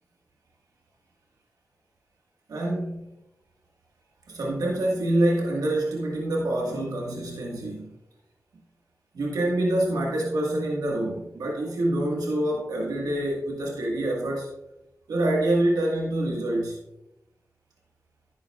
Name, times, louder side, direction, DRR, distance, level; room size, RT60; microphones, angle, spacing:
voice 1, 2.5-3.1 4.3-7.9 9.1-14.5 15.1-16.8, right 1 dB, 85° right, -2 dB, 1.6 m, -26 dB
10.5 x 9.5 x 2.3 m, 0.88 s
cardioid pair, 40°, 6 cm